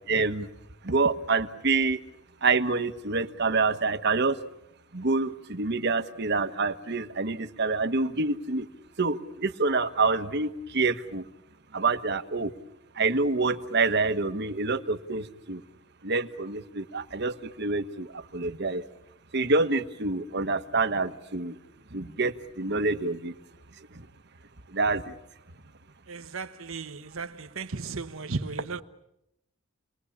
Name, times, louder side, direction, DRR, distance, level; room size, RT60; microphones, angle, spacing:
voice 1, 0.1-0.5 0.8-2.0 2.4-4.3 4.9-8.7 9.0-11.2 11.7-12.5 13.0-15.6 16.0-18.1 18.3-18.8 19.3-21.5 21.9-23.3 24.7-25.1, right 3 dB, 55° right, 1.3 m, -27 dB
voice 2, 26.1-28.8, right 4 dB, 80° right, 1.2 m, -35 dB
29.5 x 21.0 x 8.5 m
head